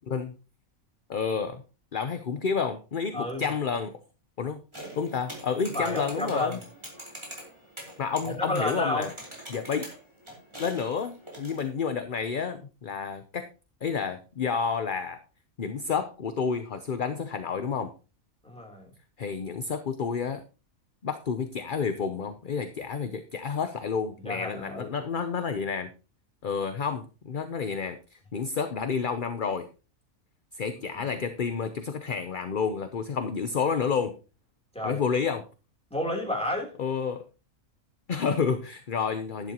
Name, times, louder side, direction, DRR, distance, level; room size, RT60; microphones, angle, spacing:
voice 1, 1.1-1.6 1.9-3.9 4.4-4.6 5.0-6.6 8.0-9.1 9.5-9.9 10.6-13.5 13.8-15.2 15.6-17.9 19.2-20.4 21.0-25.9 26.4-29.7 30.5-34.2 34.8-35.4 36.8-37.2 38.1-39.5, left 6 dB, 45° left, 9 dB, 0.9 m, -30 dB
voice 2, 3.1-3.5 5.7-6.6 8.2-9.1 18.4-18.9 24.2-24.9 34.7-35.0 35.9-36.7, left 1 dB, 5° left, -1 dB, 3.4 m, -31 dB
sound 1, 4.7-11.7, right 1 dB, 20° right, 4.5 m, -44 dB
11.5 x 11.0 x 3.0 m, 0.32 s
omnidirectional pair, 1.4 m